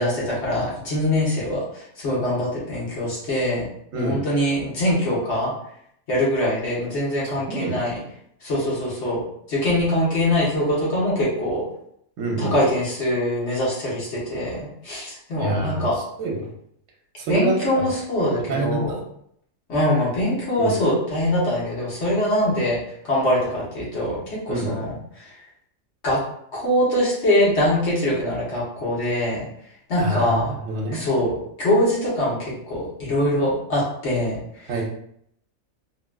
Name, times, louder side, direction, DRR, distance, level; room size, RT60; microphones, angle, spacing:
voice 1, 0.0-1.6 2.0-3.6 3.9-5.5 6.1-8.0 8.4-9.2 9.5-11.6 12.4-15.9 17.3-18.9 19.7-22.8 23.0-24.2 24.5-24.9 26.0-26.2 26.5-29.4 29.9-30.5 30.9-31.3 31.6-34.4, left 1 dB, 60° left, -6 dB, 1.4 m, -23 dB
voice 2, 3.9-4.2 7.5-7.8 12.2-12.5 15.4-16.5 17.2-17.9 18.5-19.0 20.6-20.7 24.5-24.7 30.0-31.0 34.7-34.8, right 2 dB, 75° right, 0 dB, 1.0 m, -27 dB
3.6 x 2.3 x 2.3 m, 0.70 s
omnidirectional pair, 1.4 m